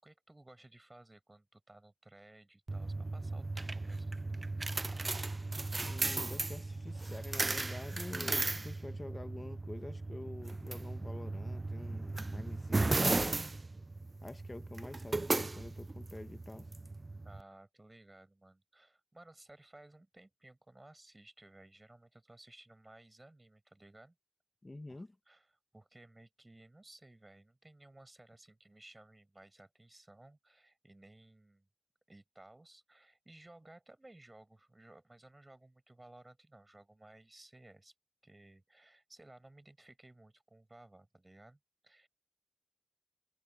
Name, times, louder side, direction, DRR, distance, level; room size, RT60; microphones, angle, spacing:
voice 1, 0.0-4.1 17.2-24.2 24.9-25.5 25.7-31.7 32.1-37.9 38.2-42.1, right 2 dB, 40° right, 7.3 m, -58 dB
sound 1, 2.7-17.4, right 2 dB, 65° right, 0.5 m, -36 dB
voice 2, 5.8-13.5 14.2-16.7 24.6-25.1, left 2 dB, 50° left, 1.4 m, -47 dB
wide cardioid pair, 45°, 0 cm